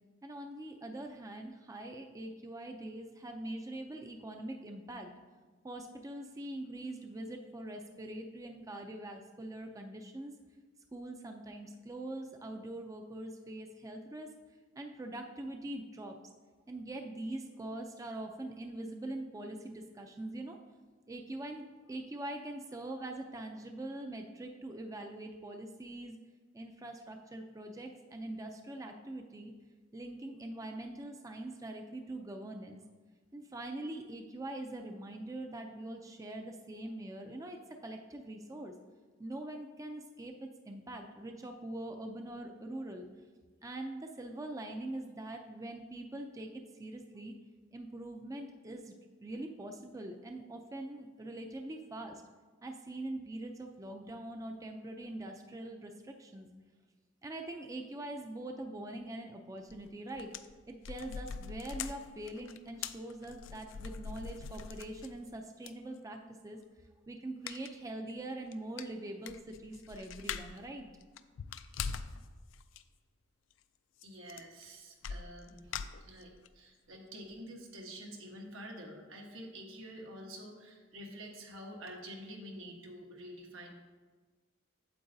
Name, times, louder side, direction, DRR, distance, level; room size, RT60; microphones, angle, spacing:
voice 1, 0.2-5.1 5.6-10.4 10.9-14.3 14.8-16.2 16.7-20.6 21.1-26.2 26.5-29.5 29.9-32.8 33.3-38.7 39.2-43.1 43.6-47.3 47.7-48.9 49.2-52.2 52.6-56.5 57.2-60.3 60.7-66.6 67.1-70.9, right 1 dB, 15° right, 4 dB, 0.4 m, -43 dB
sound 1, 59.7-59.9 60.1-65.3 65.7-65.8 67.5-67.8 68.1-68.2 68.5-68.6 68.8-70.6 71.0-72.2 72.5-72.8 74.0-74.1 74.3-74.6 75.0-76.5 76.9-77.0 77.3-77.4, left 6 dB, 70° left, 0.4 m, -42 dB
voice 2, 74.0-75.7 76.0-83.8, equal, 85° right, 1 dB, 1.3 m, -48 dB
8.6 x 7.7 x 2.7 m, 1.4 s
head